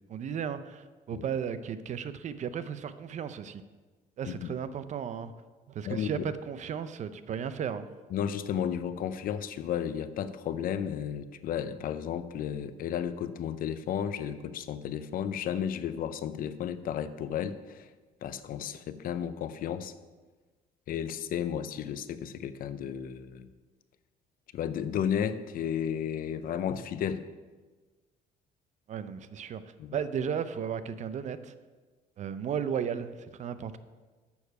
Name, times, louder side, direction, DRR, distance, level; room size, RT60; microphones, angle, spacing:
voice 1, 0.1-3.6 4.2-5.3 5.7-7.9 28.9-29.6 29.9-31.5 32.2-33.8, right 7 dB, 45° right, 13 dB, 0.5 m, -34 dB
voice 2, 5.9-6.2 8.1-17.9 18.2-19.9 20.9-23.5 24.5-27.2 29.8-30.0, left 9 dB, 60° left, 12 dB, 0.5 m, -33 dB
7.0 x 6.4 x 5.5 m, 1.3 s
cardioid pair, 110°, 17 cm